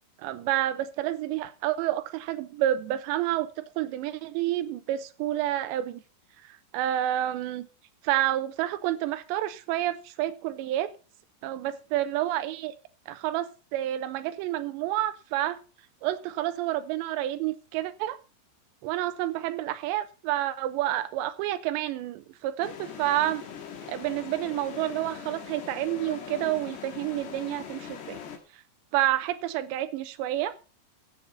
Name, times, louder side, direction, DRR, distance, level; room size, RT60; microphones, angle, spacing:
voice 1, 0.2-6.0 6.5-7.7 8.0-10.9 11.4-12.7 13.1-15.6 16.0-18.2 18.8-23.4 23.9-28.2 28.9-30.5, right 13 dB, 90° right, 11 dB, 3.0 m, -29 dB
sound 1, 22.6-28.4, left 8 dB, 75° left, 4.2 m, -41 dB
14.5 x 7.4 x 5.5 m, 0.34 s
omnidirectional pair, 5.0 m